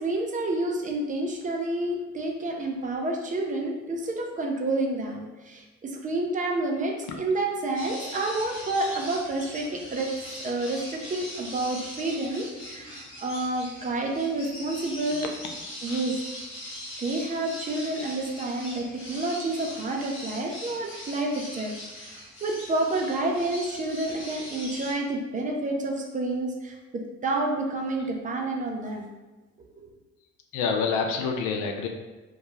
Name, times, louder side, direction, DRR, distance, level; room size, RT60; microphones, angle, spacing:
voice 1, 0.0-10.1 10.4-15.3 15.8-16.2 17.0-29.1 29.6-29.9, right 2 dB, 20° right, 1 dB, 0.5 m, -29 dB
sound 1, 7.7-24.9, left 1 dB, 35° left, 1.1 m, -41 dB
voice 2, 30.5-31.9, left 5 dB, 55° left, 3 dB, 0.5 m, -27 dB
2.2 x 2.2 x 3.0 m, 1.2 s
figure-of-eight pair, 45°, 37 cm